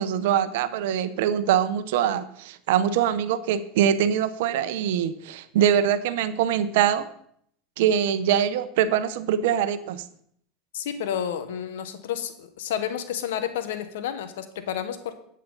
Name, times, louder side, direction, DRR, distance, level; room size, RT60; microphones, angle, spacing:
voice 1, 0.0-7.1 7.8-10.0, right 9 dB, 75° right, 12 dB, 0.8 m, -23 dB
voice 2, 10.7-15.2, left 9 dB, 80° left, 9 dB, 1.3 m, -30 dB
10.5 x 8.5 x 4.1 m, 0.66 s
hypercardioid pair, 95°, 0 cm